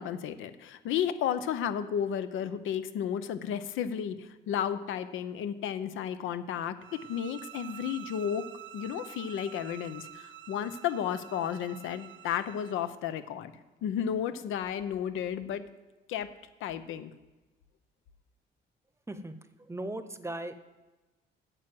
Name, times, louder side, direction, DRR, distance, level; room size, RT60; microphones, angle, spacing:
voice 1, 0.0-8.5 8.7-13.5 13.8-15.6 16.1-16.3 16.6-17.1, left 9 dB, 85° left, 12 dB, 0.7 m, -33 dB
sound 1, 6.8-12.9, right 12 dB, 65° right, 0.5 m, -48 dB
voice 2, 19.1-20.5, right 1 dB, 15° right, 11 dB, 0.8 m, -38 dB
9.1 x 6.1 x 7.8 m, 1.1 s
cardioid pair, 90°, 20 cm